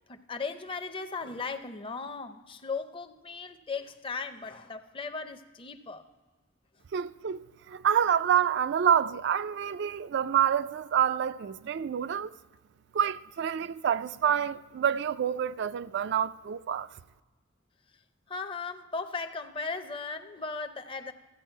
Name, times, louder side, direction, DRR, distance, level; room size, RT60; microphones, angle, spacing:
voice 1, 0.1-6.0 18.3-21.1, left 4 dB, 25° left, 0.5 m, -37 dB
voice 2, 6.9-12.3 12.9-16.9, right 8 dB, 60° right, 0.3 m, -27 dB
13.5 x 8.6 x 4.5 m
head